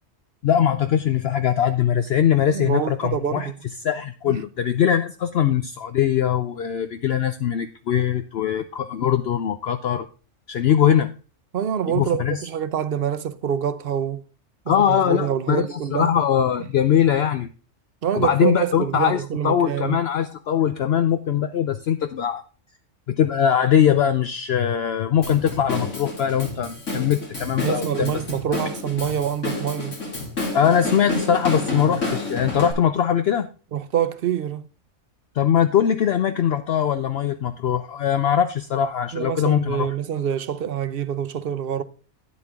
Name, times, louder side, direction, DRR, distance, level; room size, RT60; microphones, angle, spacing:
voice 1, 0.4-3.5 3.8-10.1 10.5-11.1 11.9-12.5 14.7-17.5 18.1-22.4 23.1-28.2 28.5-28.6 30.5-33.5 35.3-39.9, left 9 dB, 60° left, 0.8 m, -21 dB
voice 2, 2.5-3.5 4.3-4.4 11.5-14.2 14.7-16.1 18.0-20.0 27.6-30.0 33.7-34.7 39.1-41.8, right 9 dB, 55° right, 0.8 m, -26 dB
Drum kit / Drum, 25.2-32.7, left 2 dB, 80° left, 3.5 m, -30 dB
9.6 x 8.2 x 3.5 m
omnidirectional pair, 1.3 m